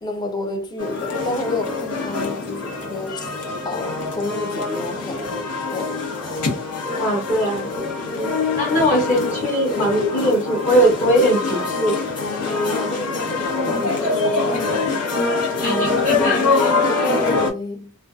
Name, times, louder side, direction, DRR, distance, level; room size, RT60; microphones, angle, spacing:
voice 1, 0.0-3.3 3.6-6.0 8.1-8.5 12.4-14.8 17.1-17.9, left 2 dB, 20° left, 0.4 m, -30 dB
sound 1, 0.8-17.5, left 3 dB, 90° left, 0.9 m, -24 dB
voice 2, 7.0-7.7 8.1-8.3 8.5-12.0 15.6-16.5, equal, 35° left, 0.8 m, -20 dB
2.5 x 2.2 x 2.3 m
head